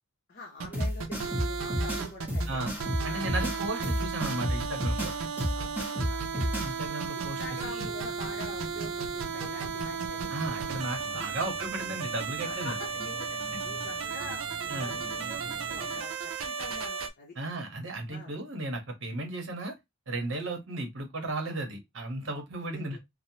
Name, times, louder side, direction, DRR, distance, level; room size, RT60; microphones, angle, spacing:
voice 1, 0.3-2.6 3.0-3.3 3.7-3.9 5.5-6.2 7.1-10.6 11.1-11.3 12.4-13.4 13.6-14.4 14.7-17.4 18.1-18.3 22.7-23.0, left 3 dB, 45° left, 0.6 m, -45 dB
sound 1, 0.6-17.1, right 5 dB, 85° right, 0.5 m, -34 dB
sound 2, 0.7-6.7, equal, 10° right, 1.0 m, -31 dB
voice 2, 3.0-5.1 6.6-7.9 10.3-12.7 14.7-15.0 17.4-19.7 20.1-23.0, right 2 dB, 65° right, 0.9 m, -35 dB
sound 3, 7.3-16.0, right 2 dB, 40° right, 0.5 m, -48 dB
3.1 x 2.0 x 2.7 m
head